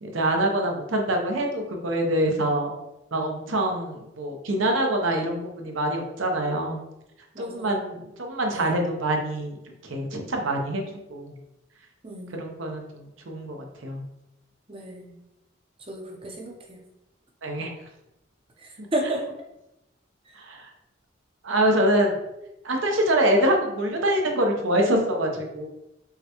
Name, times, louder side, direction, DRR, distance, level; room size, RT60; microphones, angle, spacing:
voice 1, 0.0-2.7 3.1-6.8 7.4-9.5 9.8-11.3 12.3-14.0 17.4-17.7 20.4-20.7 21.4-22.1 22.6-25.7, right 1 dB, 80° right, 2 dB, 0.8 m, -25 dB
voice 2, 7.3-7.8 8.5-8.7 12.0-12.5 14.7-15.2 15.9-16.8 18.6-19.2 20.3-20.4, right 1 dB, 30° right, 0 dB, 0.7 m, -33 dB
5.6 x 2.2 x 2.9 m, 0.91 s
head